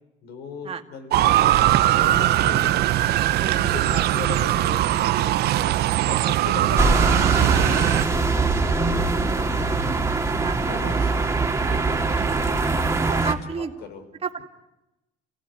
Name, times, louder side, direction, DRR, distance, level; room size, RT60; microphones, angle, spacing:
voice 1, 0.2-2.8 3.5-5.7 6.1-10.1 10.6-12.6 13.6-14.0, left 5 dB, 75° left, 8 dB, 4.7 m, -38 dB
Motor vehicle (road) / Siren, 1.1-8.0, right 14 dB, 70° right, 0.9 m, -20 dB
voice 2, 3.4-3.7 10.4-10.7 12.2-12.6 13.1-13.7 14.2-14.4, right 6 dB, 35° right, 4 dB, 2.2 m, -32 dB
sound 1, 6.8-13.3, right 3 dB, 15° right, 2.4 m, -22 dB
28.5 x 16.5 x 9.5 m, 0.96 s
cardioid pair, 110°, 17 cm